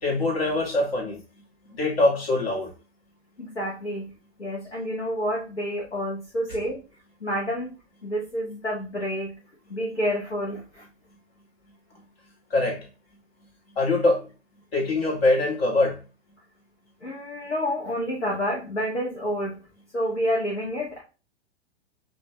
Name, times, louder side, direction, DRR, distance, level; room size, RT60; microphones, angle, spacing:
voice 1, 0.0-1.2 1.7-2.7 12.5-12.8 13.8-14.3 14.7-16.0, left 2 dB, 60° left, 0 dB, 1.8 m, -23 dB
voice 2, 3.4-4.0 4.4-6.8 7.2-7.7 8.0-9.3 9.7-10.9 17.0-19.5 19.9-21.0, equal, 80° left, -3 dB, 1.2 m, -29 dB
7.1 x 2.6 x 2.2 m, 0.34 s
figure-of-eight pair, 105°, 34 cm